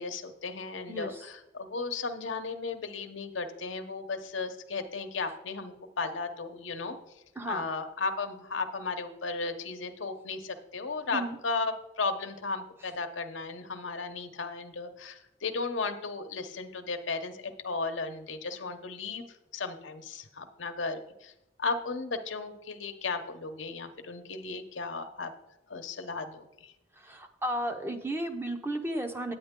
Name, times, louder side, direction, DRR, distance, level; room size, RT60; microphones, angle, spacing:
voice 1, 0.0-7.0 7.4-19.3 19.5-21.3 21.6-25.3 25.7-26.7, left 4 dB, 85° left, 6 dB, 0.9 m, -35 dB
voice 2, 0.9-1.2 7.4-7.6 11.1-11.4 27.0-29.3, right 1 dB, 10° right, 5 dB, 0.6 m, -34 dB
9.3 x 9.0 x 3.7 m, 0.88 s
head